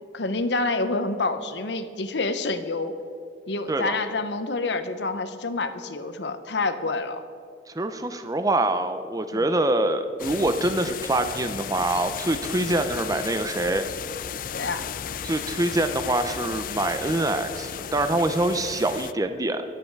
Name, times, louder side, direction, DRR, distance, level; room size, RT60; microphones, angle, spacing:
voice 1, 0.1-2.9 3.5-7.2 9.3-9.4 14.5-14.8, left 3 dB, 80° left, 10 dB, 1.0 m, -28 dB
voice 2, 7.7-13.9 15.2-19.6, right 2 dB, 20° right, 8 dB, 0.6 m, -25 dB
sound 1, 10.2-19.1, left 8 dB, 50° left, 0.4 m, -35 dB
23.5 x 8.0 x 4.6 m, 2.4 s
head